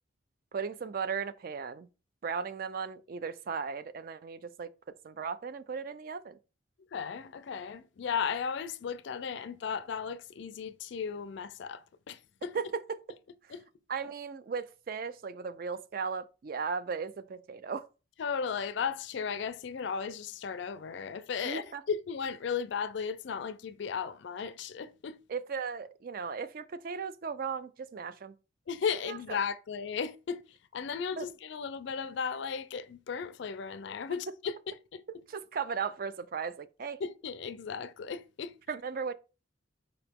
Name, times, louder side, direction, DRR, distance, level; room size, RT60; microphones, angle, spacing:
voice 1, 0.5-1.9 2.2-4.7 5.0-6.4 12.5-13.0 13.4-13.5 13.9-17.9 21.4-21.8 25.3-28.3 29.0-29.4 31.2-31.3 35.3-37.0 38.7-39.1, right 5 dB, 45° right, 0.3 m, -36 dB
voice 2, 6.9-12.5 13.5-13.6 18.2-25.2 28.7-34.6 34.9-35.0 37.0-38.5, left 6 dB, 60° left, 0.3 m, -35 dB
4.8 x 2.9 x 3.5 m
head